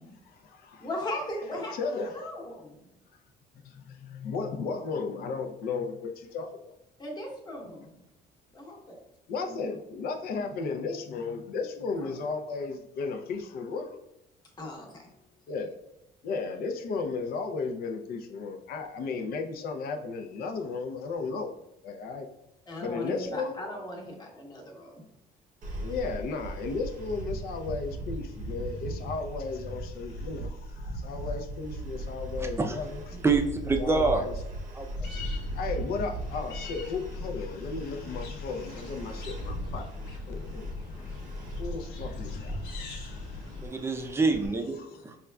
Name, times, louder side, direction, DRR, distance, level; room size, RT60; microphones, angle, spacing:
voice 1, 0.2-0.9 1.5-2.3 3.5-6.7 9.3-14.0 15.5-15.7 16.2-21.5 21.8-22.3 22.8-23.6 25.8-33.0 33.8-34.3 35.5-40.7 41.6-43.4, left 4 dB, 65° left, 5 dB, 0.6 m, -35 dB
voice 2, 0.8-2.9 7.0-7.9 8.5-9.0 9.5-9.6 12.0-12.2 14.6-15.1 22.7-25.0 33.1-33.2, left 1 dB, 25° left, -1 dB, 1.0 m, -38 dB
sound 1, 25.6-44.5, right 1 dB, 50° right, 0.7 m, -38 dB
voice 3, 32.4-32.8 33.2-34.2 34.7-34.9 43.6-44.7, right 4 dB, 15° right, 4 dB, 0.5 m, -26 dB
sound 2, 35.0-43.7, left 3 dB, 85° left, 0.9 m, -40 dB
5.2 x 2.4 x 2.2 m, 0.85 s
cardioid pair, 110°, 17 cm